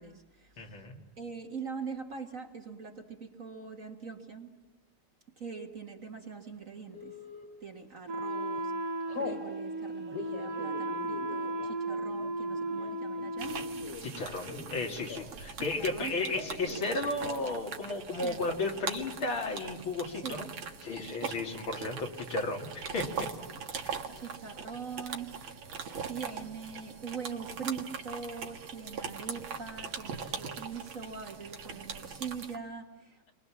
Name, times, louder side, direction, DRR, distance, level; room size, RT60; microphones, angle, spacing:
voice 1, 0.0-0.6 1.2-4.6 5.4-7.2 7.6-8.7 9.2-13.7 15.8-16.1 18.2-18.4 20.2-20.5 23.1-23.6 24.1-25.7 26.1-33.3, right 5 dB, 40° right, 3 dB, 1.9 m, -42 dB
voice 2, 0.6-1.0 14.0-20.5 20.8-23.3 23.8-24.0, left 2 dB, 70° left, 2 dB, 3.4 m, -34 dB
Telephone, 6.9-7.4 8.0-8.3 8.6-9.4 10.0-15.5 15.8-16.9 17.2-17.6 17.9-18.0 18.3-18.9, left 4 dB, 85° left, 4.4 m, -43 dB
Wind instrument woodwind instrument, 8.1-14.0, right 1 dB, 85° right, 2.9 m, -35 dB
sound 1, 13.4-32.6, right 6 dB, 65° right, 2.3 m, -41 dB
30.0 x 24.5 x 7.3 m, 1.1 s
omnidirectional pair, 2.4 m